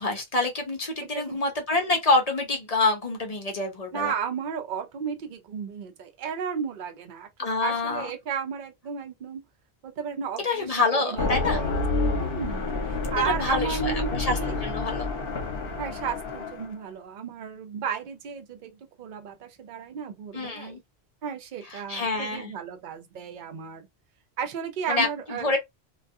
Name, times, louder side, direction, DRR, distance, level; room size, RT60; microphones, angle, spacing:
voice 1, 0.0-4.1 7.4-8.1 10.4-11.6 13.0-15.1 20.3-20.8 21.7-22.5 24.9-25.6, left 3 dB, 45° left, 0.6 m, -27 dB
voice 2, 3.9-9.4 9.8-10.7 10.9-14.6 15.8-20.8 21.2-23.9 24.4-25.6, right 7 dB, 55° right, 0.7 m, -34 dB
sound 1, 11.1-16.7, left 3 dB, 60° left, 0.9 m, -29 dB
2.3 x 2.2 x 2.6 m
omnidirectional pair, 1.1 m